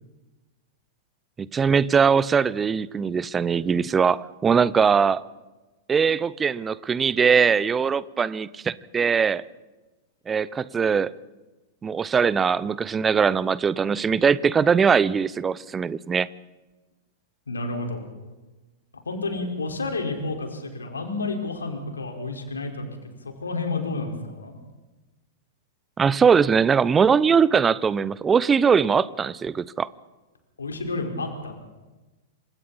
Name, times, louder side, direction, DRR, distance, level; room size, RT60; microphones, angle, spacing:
voice 1, 1.4-5.2 5.9-9.4 10.3-11.1 11.8-16.3 26.0-29.9, right 6 dB, 20° right, 20 dB, 0.7 m, -21 dB
voice 2, 17.5-18.0 19.0-22.9 23.2-24.5 30.6-31.5, left 3 dB, 75° left, 2 dB, 4.7 m, -30 dB
28.5 x 26.0 x 4.2 m, 1.2 s
figure-of-eight pair, 100°, 0 cm